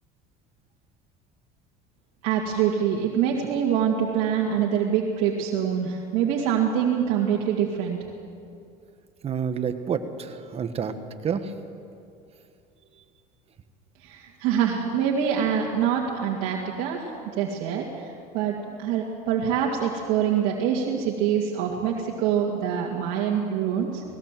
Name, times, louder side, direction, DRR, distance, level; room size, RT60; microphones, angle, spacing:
voice 1, 2.2-8.0 14.0-17.1 17.4-24.0, right 8 dB, 75° right, -2 dB, 2.3 m, -25 dB
voice 2, 9.2-10.9 11.2-11.5, right 7 dB, 35° right, 9 dB, 1.4 m, -28 dB
19.5 x 18.5 x 7.6 m, 2.5 s
supercardioid pair, 120°, 18 cm